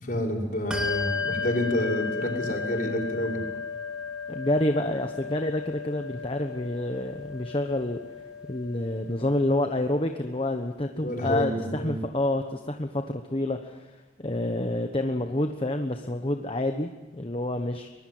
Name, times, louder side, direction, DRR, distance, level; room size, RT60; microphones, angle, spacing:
voice 1, 0.0-3.4 10.9-12.0, equal, 50° left, -1 dB, 6.1 m, -28 dB
Bell, 0.7-10.7, left 5 dB, 5° right, 2.8 m, -35 dB
voice 2, 4.3-8.0 8.5-13.9 14.2-17.9, left 1 dB, 30° left, 5 dB, 1.1 m, -28 dB
24.0 x 21.5 x 7.8 m, 1.2 s
head